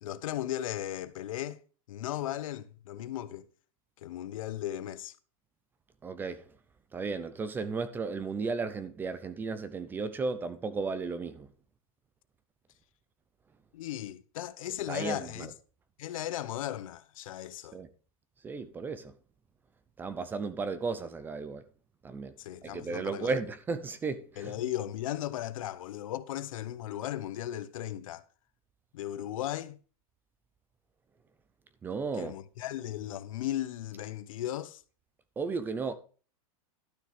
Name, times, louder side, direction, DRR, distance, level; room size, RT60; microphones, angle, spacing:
voice 1, 0.0-1.6 1.9-3.5 4.0-5.1 13.7-15.5 16.0-17.8 22.4-23.3 24.4-28.2 28.9-29.8 32.1-34.8, left 12 dB, 65° left, 0.9 m, -36 dB
voice 2, 6.0-6.4 6.9-11.5 14.9-15.5 17.7-17.9 18.4-19.1 20.0-21.6 22.0-22.3 22.6-24.5 31.8-32.3 35.4-36.0, right 4 dB, 10° right, 0.6 m, -34 dB
12.0 x 6.4 x 4.9 m
supercardioid pair, 165°, 19 cm